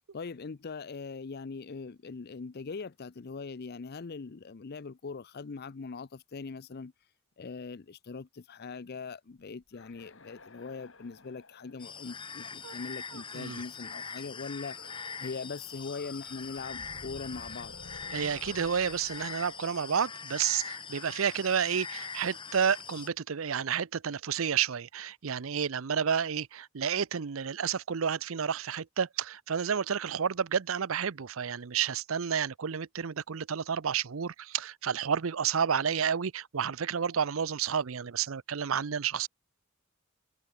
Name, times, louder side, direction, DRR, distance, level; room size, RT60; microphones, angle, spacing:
voice 1, 0.1-6.9 7.4-14.9 15.2-17.7, left 4 dB, 50° left, 0.6 m, -41 dB
sound 1, 9.4-13.5 14.6-15.4 15.7-20.6, left 2 dB, 65° left, 5.2 m, -53 dB
sound 2, 11.8-23.1, left 6 dB, 25° left, 0.8 m, -42 dB
voice 2, 18.1-39.3, right 7 dB, 80° right, 0.6 m, -30 dB
head